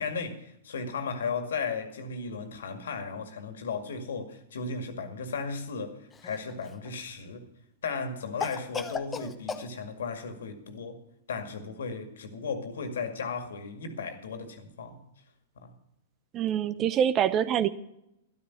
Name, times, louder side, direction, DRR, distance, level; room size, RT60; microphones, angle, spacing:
voice 1, 0.0-7.5 7.8-11.0 11.3-15.0 15.6-15.7, left 5 dB, 70° left, 2.1 m, -35 dB
Cough, 6.1-6.9 8.4-9.7, left 5 dB, 15° left, 0.9 m, -36 dB
voice 2, 16.3-17.7, right 9 dB, 30° right, 0.7 m, -25 dB
13.0 x 12.0 x 5.8 m
figure-of-eight pair, 110°, 0 cm